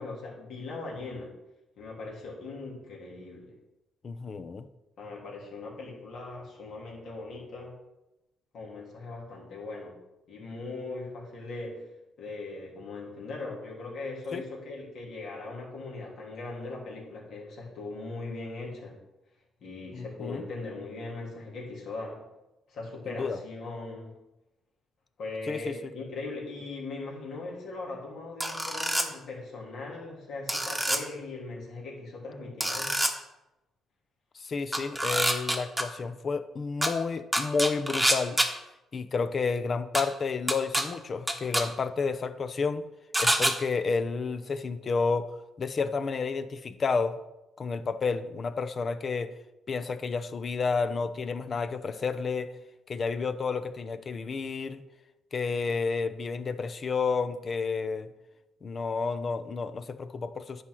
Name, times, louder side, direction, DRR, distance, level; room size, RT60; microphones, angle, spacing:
voice 1, 0.0-1.3 1.8-3.5 5.0-7.7 8.5-10.0 10.3-11.9 12.2-19.0 19.6-22.3 22.7-24.1 25.2-33.0, left 3 dB, 65° left, -3 dB, 3.1 m, -39 dB
voice 2, 4.0-4.7 14.3-14.4 19.9-20.4 23.2-23.4 25.5-25.9 34.3-38.4 38.9-42.9 43.2-47.2 47.6-49.4 49.7-52.5 52.9-54.8 55.3-58.1 58.6-60.6, left 4 dB, 45° left, 12 dB, 0.7 m, -31 dB
sound 1, 28.4-29.1 30.5-31.0 32.6-33.1 34.7-35.8 36.8-36.9 37.3-38.5 40.0-40.1 40.5-40.8 41.3-41.6 43.1-43.5, right 1 dB, 5° right, 1.2 m, -26 dB
10.0 x 4.5 x 6.3 m, 0.96 s
cardioid pair, 90°, 0 cm